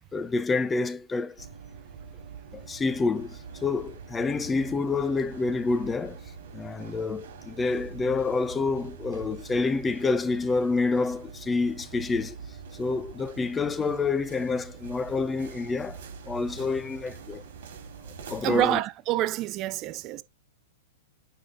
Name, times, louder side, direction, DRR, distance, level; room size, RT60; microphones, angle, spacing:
voice 1, 0.1-1.5 2.5-6.2 6.5-12.4 12.8-17.4 18.3-18.8, left 3 dB, 15° left, 0.6 m, -28 dB
sound 1, 1.4-18.6, right 6 dB, 65° right, 2.9 m, -44 dB
voice 2, 18.4-20.2, right 14 dB, 35° right, 0.4 m, -27 dB
9.4 x 3.7 x 3.7 m
hypercardioid pair, 125°, 0 cm